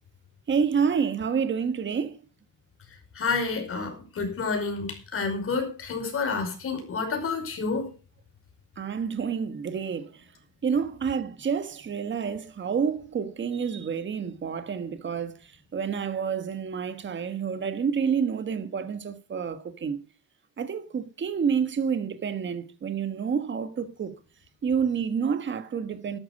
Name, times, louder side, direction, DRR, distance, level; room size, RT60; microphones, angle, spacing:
voice 1, 0.5-2.2 8.8-10.1 10.6-15.4 15.7-20.0 20.6-24.2 24.6-26.2, right 6 dB, 35° right, 1.4 m, -28 dB
voice 2, 3.2-7.9, left 4 dB, 40° left, 5.5 m, -29 dB
12.5 x 12.0 x 5.4 m
cardioid pair, 160°, 35 cm